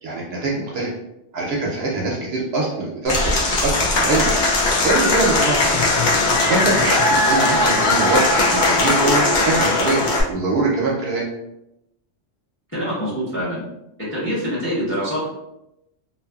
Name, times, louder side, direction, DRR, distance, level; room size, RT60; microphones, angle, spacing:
voice 1, 0.0-0.9 1.3-4.3 4.6-5.7 6.5-11.3, right 2 dB, 65° right, -3 dB, 0.7 m, -23 dB
Applause / Crowd, 3.1-10.2, left 2 dB, 55° left, 0.6 m, -18 dB
voice 2, 12.7-13.6 14.1-15.3, equal, 10° left, -8 dB, 0.7 m, -25 dB
2.5 x 2.4 x 2.3 m, 0.87 s
omnidirectional pair, 1.2 m